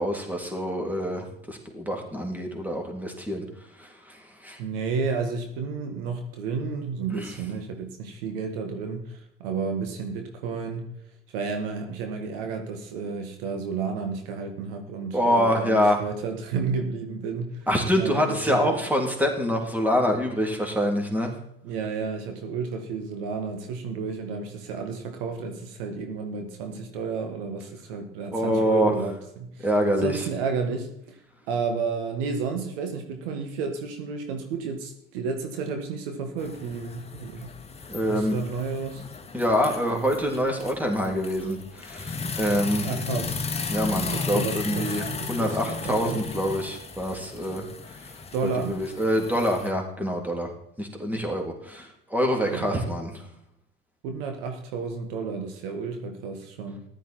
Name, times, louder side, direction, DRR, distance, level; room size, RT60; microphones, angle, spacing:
voice 1, 0.0-3.5 3.8-4.6 7.1-7.3 15.1-16.0 17.7-21.3 28.3-28.9 29.6-30.2 37.9-38.4 39.3-42.9 43.7-47.6 48.4-50.5 50.8-53.1, equal, 5° right, 2 dB, 3.2 m, -26 dB
voice 2, 4.6-10.8 11.3-17.7 18.0-18.8 21.6-29.7 30.0-31.2 31.5-37.5 38.1-39.0 42.8-43.4 43.9-46.2 48.3-48.8 52.5-52.9 54.0-56.9, right 5 dB, 70° right, 5 dB, 1.9 m, -31 dB
sound 1, 36.4-49.7, left 4 dB, 20° left, 1.7 m, -35 dB
14.5 x 11.5 x 4.5 m, 0.74 s
hypercardioid pair, 70°, 30 cm